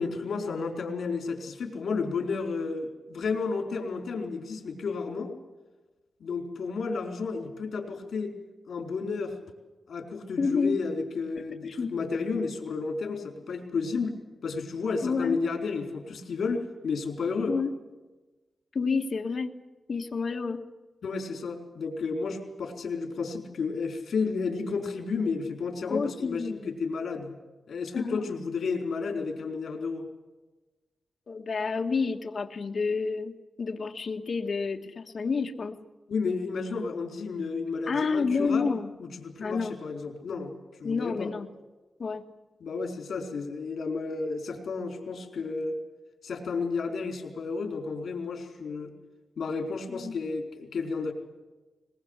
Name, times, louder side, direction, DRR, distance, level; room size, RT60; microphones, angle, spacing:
voice 1, 0.0-5.3 6.2-8.4 8.7-9.3 9.9-17.5 21.0-27.3 27.7-30.1 36.1-38.7 39.0-40.5 40.8-41.3 42.6-45.8 46.2-48.9 49.4-51.1, left 4 dB, 80° left, 3 dB, 4.5 m, -32 dB
voice 2, 10.4-10.8 11.6-11.9 15.0-15.4 17.5-17.7 18.7-19.5 19.9-20.6 25.9-26.7 27.9-28.3 31.3-33.3 33.6-35.8 36.7-36.8 37.9-38.9 39.4-39.7 40.8-41.5 42.0-42.2 49.9-50.1, left 4 dB, 50° left, 4 dB, 1.6 m, -29 dB
22.0 x 21.5 x 8.2 m, 1.2 s
wide cardioid pair, 175°, 0 cm